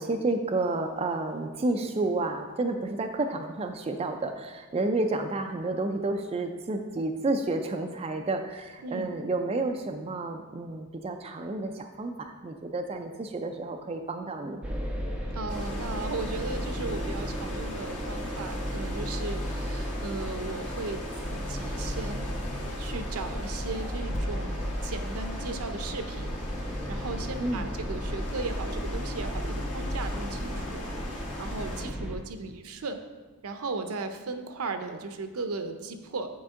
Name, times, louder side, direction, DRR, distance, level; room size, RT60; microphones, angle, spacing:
voice 1, 0.0-14.6 27.4-27.7, right 2 dB, 25° right, 4 dB, 0.3 m, -30 dB
sound 1, 14.6-32.2, equal, 5° right, 0.7 m, -34 dB
voice 2, 15.3-22.3 22.8-24.6 24.8-26.4 26.9-30.8 31.1-33.0 33.4-36.3, right 3 dB, 80° right, 8 dB, 0.6 m, -36 dB
sound 2, 15.5-31.8, left 2 dB, 85° left, 1.3 m, -41 dB
9.4 x 4.3 x 3.6 m, 1.3 s
head